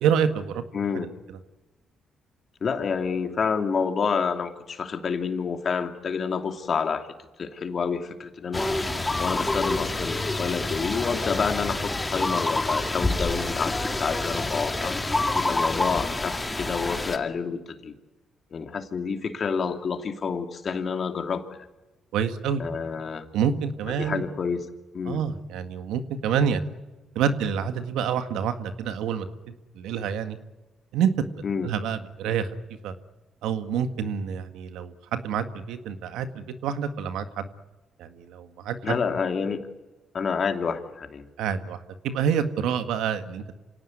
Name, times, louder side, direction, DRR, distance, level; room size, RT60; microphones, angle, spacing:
voice 1, 0.0-0.6 0.9-1.1 22.1-22.6 23.3-24.2 25.1-26.6 27.2-30.4 30.9-31.1 31.6-32.5 32.8-32.9 33.4-37.5 38.0-39.0 41.4-41.8 42.0-43.5, right 7 dB, 85° right, 9 dB, 1.8 m, -27 dB
voice 2, 0.7-1.1 2.6-8.8 9.2-18.0 18.5-21.7 22.6-23.3 23.9-25.2 31.4-31.7 38.8-39.6 40.1-41.3, left 5 dB, 50° left, 6 dB, 2.8 m, -29 dB
sound 1, 8.5-17.2, left 2 dB, 20° left, 2.5 m, -27 dB
27.0 x 18.0 x 9.6 m, 1.1 s
supercardioid pair, 65°, 0 cm